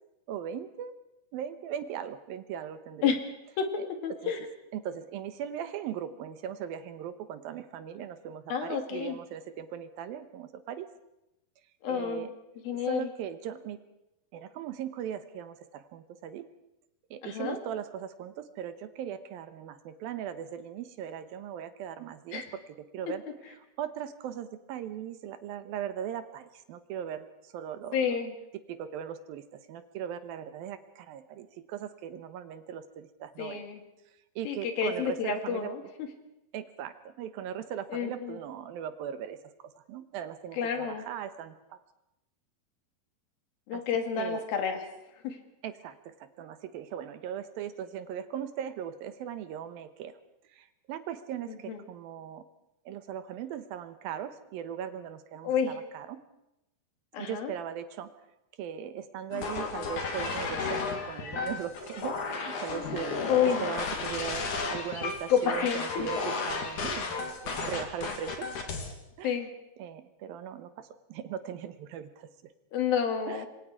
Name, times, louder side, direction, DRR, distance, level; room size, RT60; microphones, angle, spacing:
voice 1, 0.3-0.9 1.3-3.1 3.8-3.9 4.2-4.3 4.7-10.9 11.9-12.3 12.8-13.8 14.3-16.5 17.1-28.2 28.7-33.6 34.4-35.7 36.5-39.4 39.6-41.8 43.7-43.8 44.2-44.4 45.6-50.2 50.5-52.4 52.9-56.2 57.2-58.1 58.6-63.3 63.6-68.5 69.2-69.4 69.8-72.5 73.3-73.5, right 9 dB, 75° right, 10 dB, 2.8 m, -39 dB
voice 2, 4.0-4.4 8.5-9.2 11.8-12.3 12.7-13.1 17.2-17.6 22.3-22.4 27.9-28.3 33.4-33.8 34.5-35.8 37.9-38.4 40.6-41.0 43.7-44.8 45.2-45.4 51.7-51.8 55.4-55.8 57.1-57.5 63.3-63.7 65.3-65.8 69.2-69.5 72.7-73.5, left 7 dB, 75° left, 5 dB, 3.8 m, -29 dB
sound 1, 59.3-68.9, left 4 dB, 55° left, 3.7 m, -33 dB
27.0 x 22.5 x 4.8 m, 0.88 s
omnidirectional pair, 4.3 m